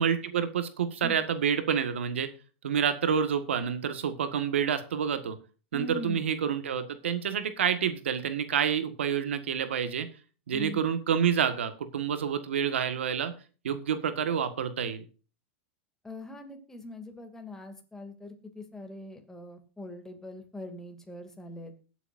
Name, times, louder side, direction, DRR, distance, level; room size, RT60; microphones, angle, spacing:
voice 1, 0.0-2.3 2.6-5.4 5.7-10.1 10.5-13.3 13.6-15.0, right 7 dB, 90° right, 10 dB, 1.7 m, -28 dB
voice 2, 5.7-6.3 10.5-10.8 16.0-21.7, left 1 dB, 10° left, 4 dB, 2.6 m, -42 dB
21.0 x 8.2 x 2.7 m, 0.35 s
hypercardioid pair, 120°, 6 cm